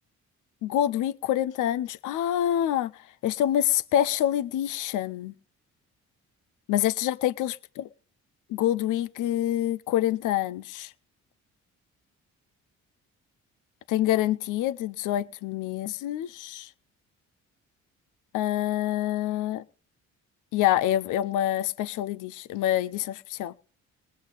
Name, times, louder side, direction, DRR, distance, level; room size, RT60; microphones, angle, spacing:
voice 1, 0.6-2.9 3.2-5.3 6.7-7.5 8.5-10.9 13.9-16.7 18.3-19.6 20.5-23.5, left 12 dB, 90° left, 0.7 m, -26 dB
19.5 x 8.5 x 4.0 m
cardioid pair, 90°, 30 cm